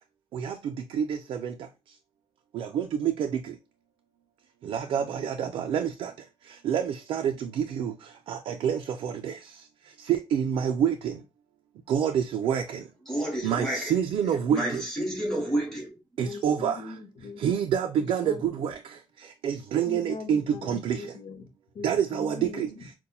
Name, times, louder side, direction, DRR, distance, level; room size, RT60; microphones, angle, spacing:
voice 1, 2.5-3.3 4.7-6.1 6.6-7.9 8.3-9.3 10.1-11.1 11.9-12.6 13.4-14.8 16.2-16.8 17.4-18.7 19.4-21.0 21.8-22.7, right 8 dB, 80° right, 0.4 m, -27 dB
voice 2, 13.1-13.9 14.5-15.9, right 1 dB, 5° left, 1.2 m, -30 dB
voice 3, 16.2-17.4 18.0-18.5 19.9-21.5 21.7-22.9, left 4 dB, 65° left, 0.7 m, -41 dB
5.4 x 2.2 x 2.2 m
wide cardioid pair, 170°, 9 cm